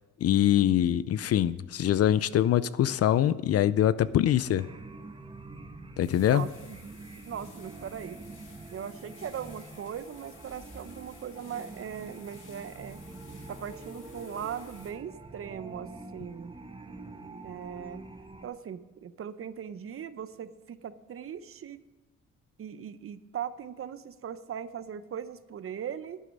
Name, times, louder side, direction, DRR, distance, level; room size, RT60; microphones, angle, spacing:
voice 1, 0.2-4.7 6.0-6.4, left 11 dB, 55° left, 17 dB, 0.5 m, -24 dB
sound 1, 4.5-18.5, right 3 dB, 15° right, 1.0 m, -46 dB
sound 2, 6.0-14.9, left 5 dB, 85° left, 2.6 m, -55 dB
voice 2, 6.2-8.2 8.7-13.0 13.5-16.6 17.4-18.0 18.4-21.8 22.6-26.2, right 8 dB, 45° right, 14 dB, 0.7 m, -39 dB
11.0 x 9.9 x 5.3 m, 1.1 s
cardioid pair, 90°, 30 cm